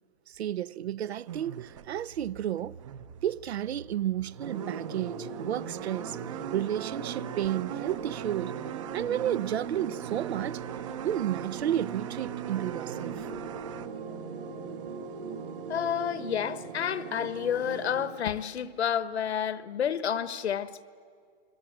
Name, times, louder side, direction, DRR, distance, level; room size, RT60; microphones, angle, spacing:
voice 1, 0.3-2.8 3.2-6.2 6.5-8.5 8.9-10.6 11.0-13.3, right 11 dB, 80° right, 0.7 m, -32 dB
sound 1, 1.3-13.9, right 10 dB, 30° right, 0.7 m, -40 dB
sound 2, 4.4-18.1, right 4 dB, 55° right, 3.2 m, -40 dB
voice 2, 15.7-20.8, left 8 dB, 85° left, 1.3 m, -30 dB
29.5 x 22.0 x 8.8 m
hypercardioid pair, 170°, 32 cm